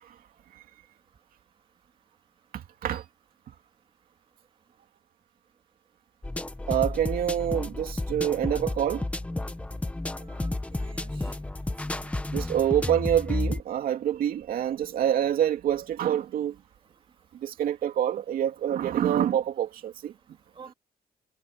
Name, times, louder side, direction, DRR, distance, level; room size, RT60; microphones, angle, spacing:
voice 1, 2.5-3.0 3.5-3.6 6.7-9.0 12.3-16.6 17.4-20.1, right 10 dB, 70° right, 2.6 m, -26 dB
sound 1, 6.2-13.6, left 2 dB, 10° left, 1.4 m, -32 dB
voice 2, 10.2-11.3 12.0-12.1 20.5-20.7, right 6 dB, 35° right, 2.6 m, -50 dB
cardioid pair, 175°, 16 cm